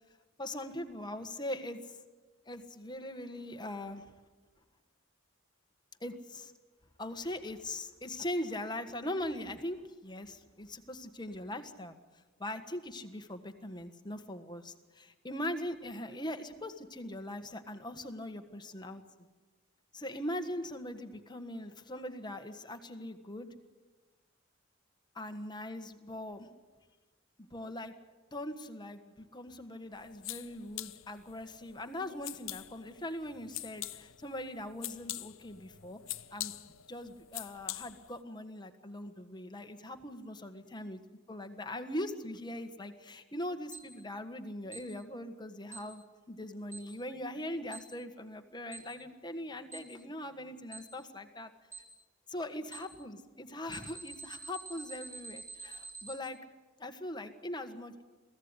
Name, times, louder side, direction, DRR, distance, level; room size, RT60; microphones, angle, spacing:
voice 1, 0.4-2.0 2.5-4.0 6.0-6.5 7.0-11.9 12.4-19.0 19.9-23.5 25.1-26.5 27.5-27.9 28.3-36.0 36.3-41.0 41.3-51.5 52.3-56.4 56.8-58.0, left 1 dB, 20° left, 7 dB, 1.6 m, -41 dB
sound 1, 29.9-38.2, left 15 dB, 80° left, 0.7 m, -45 dB
Alarm, 43.7-43.8 44.7-44.8 45.7-45.8 46.7-46.8 47.7-47.8 48.7-48.8 49.7-49.8 50.7-50.8 51.7-51.8 52.7-52.8 53.7-56.1, right 4 dB, 15° right, 4.9 m, -45 dB
23.0 x 16.0 x 9.8 m, 1.3 s
head